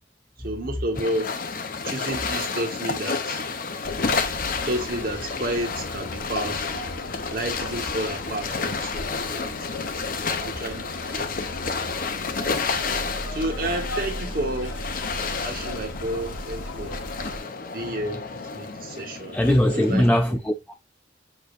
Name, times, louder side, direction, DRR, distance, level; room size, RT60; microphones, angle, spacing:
voice 1, 0.4-1.3 1.8-3.4 4.6-6.9 7.3-9.8 10.4-11.3 12.3-12.8 13.3-14.8 15.4-17.0 17.7-18.3 18.5-19.4 19.7-20.4, right 1 dB, 50° right, 1.3 m, -31 dB
sound 1, 0.9-20.1, left 4 dB, 45° left, 0.7 m, -31 dB
sound 2, 3.8-17.4, left 1 dB, 85° left, 1.1 m, -37 dB
voice 2, 19.3-20.7, left 1 dB, 10° left, 0.3 m, -21 dB
6.7 x 3.2 x 2.5 m
head